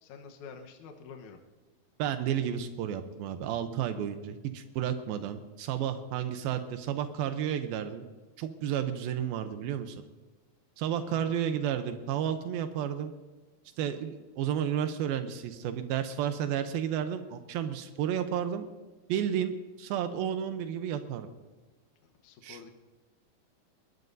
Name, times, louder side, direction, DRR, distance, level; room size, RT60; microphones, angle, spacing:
voice 1, 0.0-1.4 11.0-11.4 22.2-22.7, left 5 dB, 65° left, 3 dB, 2.3 m, -48 dB
voice 2, 2.0-8.0 8.4-10.0 10.8-13.1 13.8-18.7 19.1-21.3 22.4-22.6, right 9 dB, 85° right, 8 dB, 2.7 m, -32 dB
22.0 x 20.0 x 2.7 m, 1.3 s
omnidirectional pair, 4.2 m